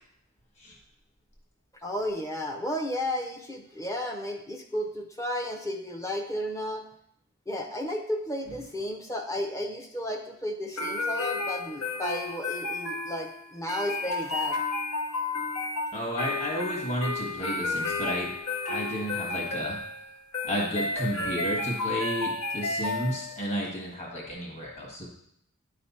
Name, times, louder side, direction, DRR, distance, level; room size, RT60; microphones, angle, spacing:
voice 1, 1.8-6.8 7.5-14.6, left 1 dB, 15° left, 3 dB, 0.6 m, -33 dB
sound 1, 10.8-23.6, left 3 dB, 80° left, 0.9 m, -32 dB
voice 2, 15.9-18.3 18.6-19.8 20.4-25.1, equal, 30° left, -2 dB, 1.5 m, -32 dB
9.7 x 3.3 x 4.2 m, 0.71 s
head